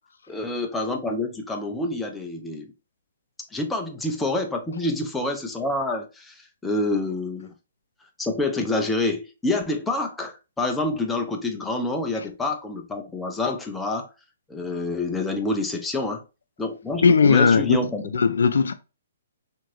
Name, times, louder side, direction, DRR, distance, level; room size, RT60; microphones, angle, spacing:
voice 1, 0.3-2.7 3.5-7.5 8.2-14.1 14.5-16.2 16.6-18.0, left 2 dB, 5° left, 0.4 m, -27 dB
voice 2, 17.0-17.8 18.1-18.7, left 5 dB, 80° left, 0.3 m, -17 dB
2.8 x 2.5 x 3.0 m
hypercardioid pair, 145°, 0 cm